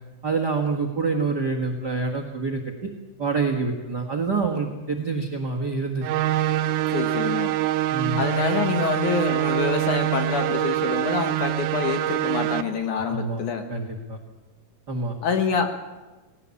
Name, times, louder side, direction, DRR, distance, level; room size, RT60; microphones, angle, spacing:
voice 1, 0.2-2.9 3.2-6.0 7.9-8.2 13.1-13.4 13.7-14.2 14.9-15.1, right 4 dB, 45° right, 5 dB, 1.4 m, -26 dB
sound 1, 6.0-12.6, right 14 dB, 80° right, 2.6 m, -24 dB
voice 2, 6.9-7.5 8.2-13.7 15.2-15.7, left 6 dB, 60° left, 6 dB, 2.5 m, -26 dB
19.5 x 17.5 x 8.4 m, 1.2 s
omnidirectional pair, 4.5 m